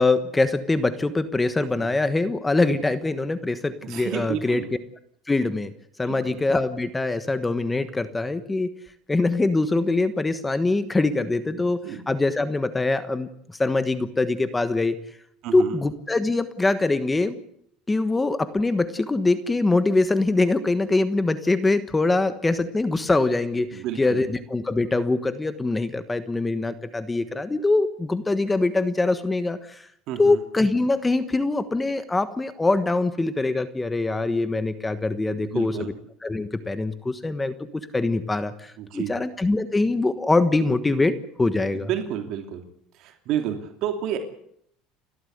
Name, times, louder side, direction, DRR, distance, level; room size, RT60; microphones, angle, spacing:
voice 1, 0.0-4.6 5.3-5.7 6.0-8.7 9.1-13.3 13.6-14.9 15.5-17.4 17.9-29.8 30.2-35.9 36.2-41.1 41.4-41.9, left 2 dB, 10° left, 12 dB, 1.3 m, -23 dB
voice 2, 3.8-4.7 6.1-6.4 11.8-12.0 15.4-15.8 23.7-24.2 30.1-30.4 35.4-35.9 38.8-39.1 41.7-42.6 43.0-44.2, right 10 dB, 60° right, 5 dB, 2.8 m, -30 dB
30.0 x 12.5 x 8.0 m, 0.69 s
cardioid pair, 130°, 0 cm